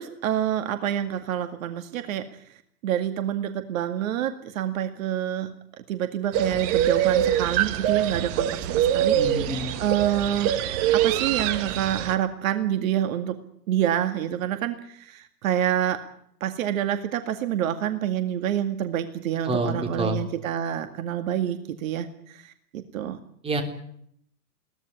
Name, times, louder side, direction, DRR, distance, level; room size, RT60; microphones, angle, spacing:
voice 1, 0.0-2.3 2.8-10.5 10.9-13.4 13.7-16.0 16.4-23.2, right 10 dB, 50° right, 8 dB, 2.2 m, -27 dB
sound 1, 6.3-12.1, right 11 dB, 35° right, 1.9 m, -24 dB
voice 2, 9.0-9.7 19.5-20.2 23.4-23.6, right 2 dB, 10° right, 4 dB, 3.8 m, -27 dB
22.0 x 17.5 x 9.8 m, 0.69 s
hypercardioid pair, 130°, 50 cm